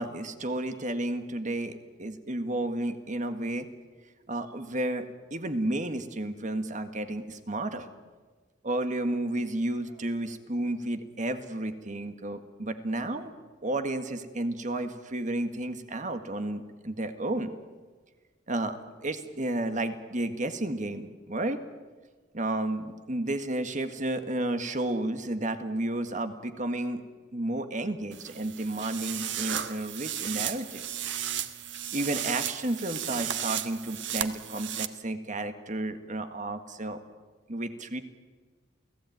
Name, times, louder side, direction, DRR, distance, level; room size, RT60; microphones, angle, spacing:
voice 1, 0.0-3.7 4.3-7.9 8.6-13.3 13.6-17.5 18.5-21.6 22.3-27.0 27.3-30.9 31.9-37.0 37.5-38.0, right 1 dB, 45° right, 9 dB, 1.8 m, -32 dB
sound 1, 28.1-34.9, right 10 dB, 80° right, 1.5 m, -34 dB
29.0 x 17.5 x 9.3 m, 1.4 s
head